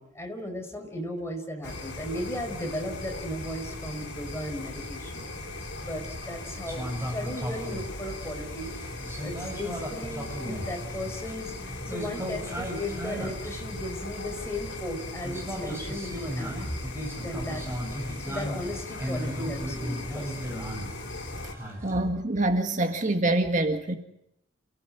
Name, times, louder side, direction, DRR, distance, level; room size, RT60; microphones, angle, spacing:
voice 1, 0.0-5.2 5.8-8.7 9.2-16.5 17.1-17.6 18.2-20.5, left 1 dB, 15° left, 3 dB, 5.4 m, -36 dB
sound 1, 1.6-21.5, left 2 dB, 60° left, 4.1 m, -38 dB
sound 2, 6.7-14.7 15.2-22.0, equal, 10° right, 7.8 m, -36 dB
voice 2, 21.4-24.0, right 2 dB, 40° right, 4 dB, 1.8 m, -26 dB
29.0 x 17.0 x 9.0 m, 0.79 s
head